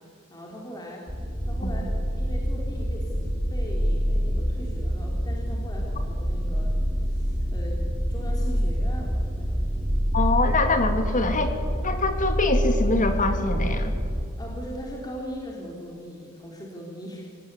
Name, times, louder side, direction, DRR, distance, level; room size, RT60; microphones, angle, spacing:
voice 1, 0.3-1.1 1.4-1.8 2.2-6.7 7.0-7.8 8.1-9.6 14.4-17.4, equal, 20° left, -2 dB, 3.7 m, -40 dB
sound 1, 1.1-14.2, equal, 5° right, 4.7 m, -26 dB
voice 2, 10.1-11.6 11.8-13.9, left 2 dB, 35° left, 7 dB, 2.7 m, -24 dB
26.0 x 18.5 x 9.7 m, 2.2 s
head